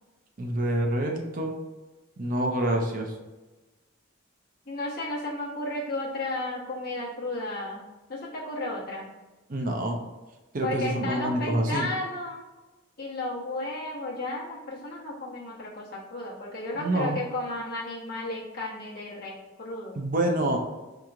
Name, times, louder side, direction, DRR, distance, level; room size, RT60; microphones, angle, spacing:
voice 1, 0.4-1.5 2.2-3.1 9.5-10.0 10.5-11.9 16.7-17.2 20.0-20.6, right 1 dB, 40° right, 2 dB, 0.5 m, -27 dB
voice 2, 4.7-7.8 8.1-9.1 10.6-12.4 13.0-20.0, left 2 dB, 50° left, -5 dB, 1.0 m, -33 dB
4.7 x 2.9 x 2.4 m, 1.2 s
head